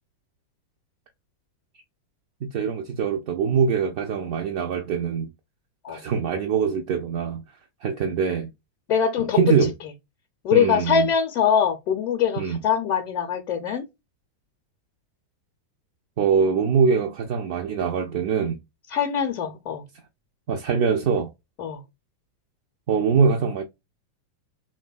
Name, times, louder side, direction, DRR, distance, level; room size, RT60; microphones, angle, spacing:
voice 1, 2.5-5.3 5.9-7.4 7.8-8.5 9.3-9.7 10.5-11.1 12.4-12.6 16.2-18.6 20.5-21.3 22.9-23.6, right 6 dB, 50° right, 0.4 m, -23 dB
voice 2, 8.9-9.5 10.4-13.8 18.9-19.8 21.6-21.8, left 8 dB, 40° left, 0.5 m, -23 dB
3.2 x 2.1 x 2.3 m
figure-of-eight pair, 90°, 0 cm